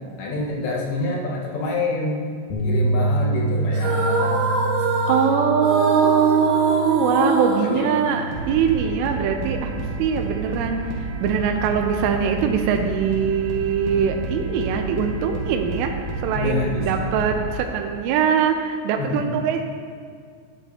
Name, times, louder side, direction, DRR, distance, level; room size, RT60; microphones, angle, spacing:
voice 1, 0.2-2.2 2.6-4.4 7.6-7.9 16.3-17.2 19.0-19.4, left 2 dB, 85° left, -3 dB, 3.7 m, -27 dB
Bass guitar, 2.5-8.7, right 2 dB, 55° left, 2.2 m, -27 dB
sound 1, 3.7-8.6, right 2 dB, 50° right, 2.3 m, -25 dB
voice 2, 5.1-9.7 10.0-10.9 11.2-15.9 16.2-19.6, right 7 dB, 90° right, 4 dB, 2.8 m, -22 dB
sound 2, 8.2-17.5, right 2 dB, 65° right, 2.1 m, -30 dB
11.5 x 9.5 x 2.8 m, 2.1 s
omnidirectional pair, 4.9 m